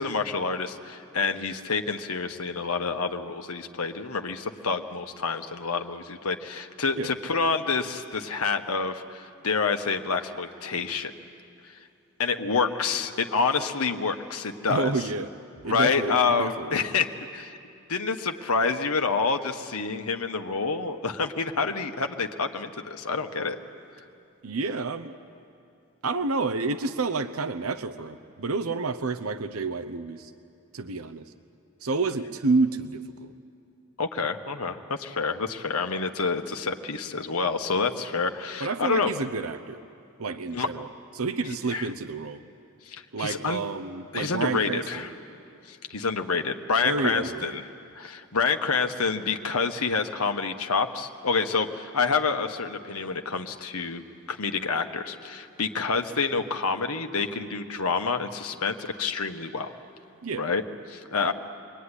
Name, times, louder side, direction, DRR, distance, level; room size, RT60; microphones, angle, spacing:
voice 1, 0.0-11.1 12.2-14.9 15.7-17.6 17.9-23.6 34.0-39.1 40.5-40.7 41.7-41.9 42.9-43.6 44.1-45.1 45.7-47.7 48.0-54.0 54.3-59.7 60.4-61.3, left 4 dB, 90° left, 6 dB, 1.4 m, -28 dB
voice 2, 14.7-15.3 15.6-16.9 24.4-25.2 26.0-30.3 30.7-31.3 31.8-33.3 38.6-39.8 40.2-40.9 41.1-42.4 43.1-45.1 46.8-47.6 60.2-60.5, right 3 dB, 80° right, 11 dB, 0.9 m, -29 dB
27.0 x 22.0 x 9.9 m, 2.6 s
head